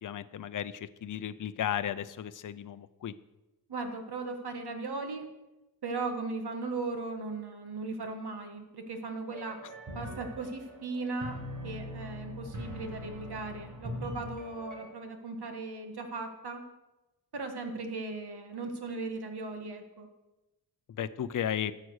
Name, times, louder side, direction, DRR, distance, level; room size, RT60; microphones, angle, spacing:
voice 1, 0.0-3.1 21.0-21.7, left 10 dB, 50° left, 12 dB, 0.5 m, -34 dB
voice 2, 3.7-5.3 5.8-9.6 9.9-16.6 17.3-20.1, right 3 dB, 75° right, 6 dB, 1.7 m, -37 dB
sound 1, 9.3-14.9, left 1 dB, 50° right, 2.4 m, -42 dB
12.5 x 7.6 x 6.4 m, 1.0 s
wide cardioid pair, 130°, 40 cm